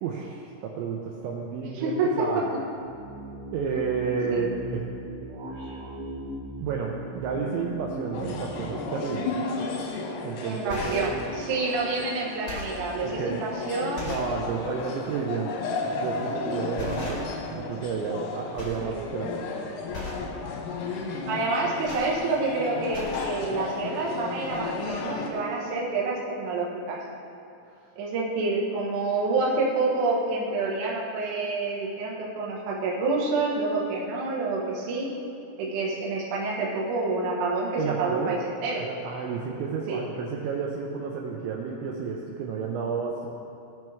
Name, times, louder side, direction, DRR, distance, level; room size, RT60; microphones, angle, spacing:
voice 1, 0.0-2.5 3.5-4.8 6.6-9.5 10.2-11.3 13.0-13.5 14.0-15.6 15.9-19.4 37.8-38.4 38.8-43.3, right 6 dB, 85° right, -1 dB, 2.7 m, -31 dB
voice 2, 1.7-2.3 4.3-4.4 10.4-14.1 18.8-19.0 21.3-27.0 28.0-35.1 35.6-38.8 39.9-40.0, right 3 dB, 70° right, -4 dB, 1.9 m, -28 dB
sound 1, 2.7-9.9, equal, 45° right, 2.3 m, -39 dB
sound 2, 8.1-25.3, left 4 dB, 90° left, 3.7 m, -34 dB
sound 3, 9.8-10.0 10.5-11.2 11.9-12.0 12.3-12.8 13.4-13.5 13.9-14.3 14.7-14.9 16.1-16.3 16.7-17.5 17.8-18.3 18.5-18.9 19.2-19.4 19.9-20.3 21.5-22.6 22.8-23.4 24.2-24.3 24.5-24.6, left 2 dB, 75° left, 0.5 m, -39 dB
17.5 x 6.2 x 3.5 m, 2.7 s
omnidirectional pair, 5.9 m